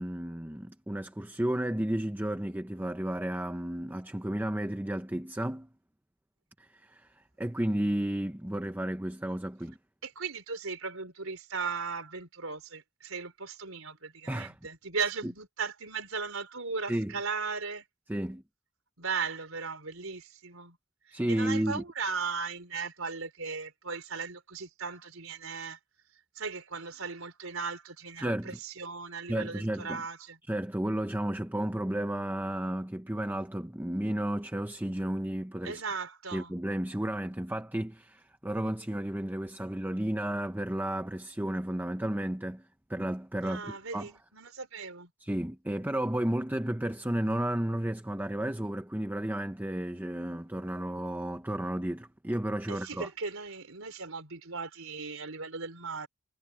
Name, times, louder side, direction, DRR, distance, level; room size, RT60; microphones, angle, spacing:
voice 1, 0.0-5.7 6.6-9.8 14.3-14.6 15.2-15.3 16.9-17.1 18.1-18.4 21.1-21.8 28.2-28.6 29.3-30.0 30.5-35.8 36.3-44.1 45.2-53.1, right 1 dB, 10° right, 0.7 m, -32 dB
voice 2, 10.0-17.8 19.0-20.8 21.1-25.8 26.4-30.4 35.6-36.5 43.4-45.1 52.7-56.1, right 5 dB, 75° right, 4.0 m, -37 dB
head